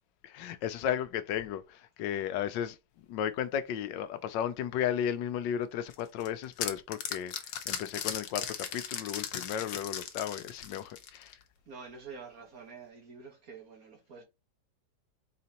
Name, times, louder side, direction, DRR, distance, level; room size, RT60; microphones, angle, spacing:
voice 1, 0.2-11.4, left 9 dB, 90° left, 1.3 m, -34 dB
sound 1, 5.9-11.4, left 8 dB, 70° left, 1.2 m, -37 dB
voice 2, 11.7-14.2, right 5 dB, 55° right, 1.8 m, -47 dB
4.2 x 3.9 x 2.9 m
omnidirectional pair, 1.9 m